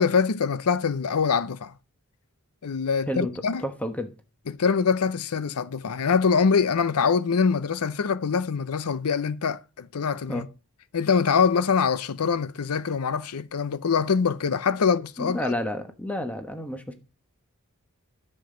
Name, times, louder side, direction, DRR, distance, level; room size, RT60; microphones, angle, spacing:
voice 1, 0.0-1.7 2.6-3.6 4.5-10.5 10.9-15.5, left 5 dB, 90° left, 0.6 m, -24 dB
voice 2, 3.6-4.1 10.3-10.4 15.2-16.9, left 1 dB, 5° left, 1.1 m, -30 dB
10.5 x 7.4 x 3.8 m
head